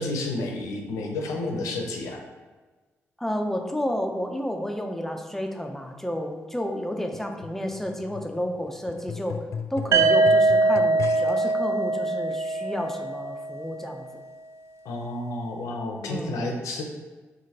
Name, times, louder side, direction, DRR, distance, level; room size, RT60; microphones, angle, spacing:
voice 1, 0.0-2.2 14.8-16.8, left 2 dB, 85° left, 2 dB, 0.7 m, -31 dB
voice 2, 3.2-9.4 9.7-14.1 16.0-16.4, equal, 5° left, 4 dB, 0.6 m, -31 dB
sound 1, 7.1-11.5 12.3-12.4, left 6 dB, 65° left, 0.3 m, -38 dB
sound 2, 9.9-13.8, right 3 dB, 60° right, 0.4 m, -22 dB
4.9 x 3.7 x 2.9 m, 1.3 s
cardioid pair, 65°, 5 cm